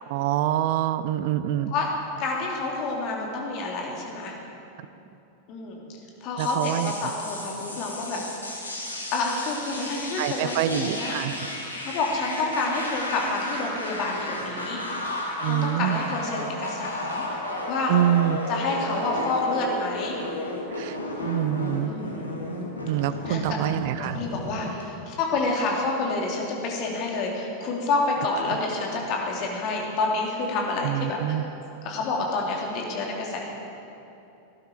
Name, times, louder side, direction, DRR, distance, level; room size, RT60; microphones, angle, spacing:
voice 1, 0.1-1.7 6.4-6.9 10.2-11.3 15.4-16.0 17.9-18.4 20.8-21.9 22.8-24.2 30.8-31.4, right 12 dB, 50° right, 14 dB, 0.5 m, -25 dB
voice 2, 2.2-4.3 5.5-5.8 6.2-8.2 9.1-11.1 11.8-14.8 15.4-17.2 17.7-17.9 18.5-20.2 21.8-22.3 23.3-23.6 24.0-31.5 31.8-33.5, left 3 dB, 40° left, -1 dB, 2.7 m, -28 dB
sound 1, 6.4-24.8, left 1 dB, 80° left, 2.0 m, -34 dB
18.0 x 11.5 x 4.5 m, 2.9 s
figure-of-eight pair, 90°, 0 cm